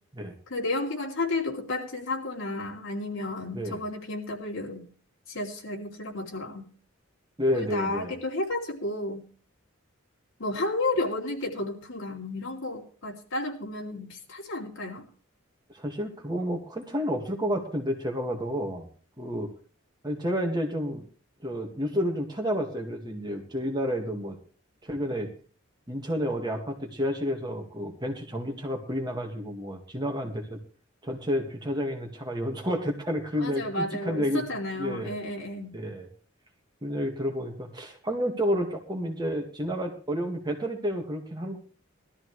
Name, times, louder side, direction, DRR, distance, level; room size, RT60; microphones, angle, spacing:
voice 1, 0.5-4.9 5.3-6.6 7.5-9.2 10.4-15.1 33.4-35.7, left 2 dB, 70° left, 0 dB, 2.9 m, -32 dB
voice 2, 7.4-8.1 15.7-18.9 19.2-19.5 20.0-21.1 21.4-24.4 24.8-25.3 25.9-30.6 31.0-34.5 34.8-35.2 35.7-36.1 36.8-41.6, equal, 20° right, 2 dB, 1.9 m, -30 dB
20.0 x 13.0 x 3.2 m, 0.40 s
head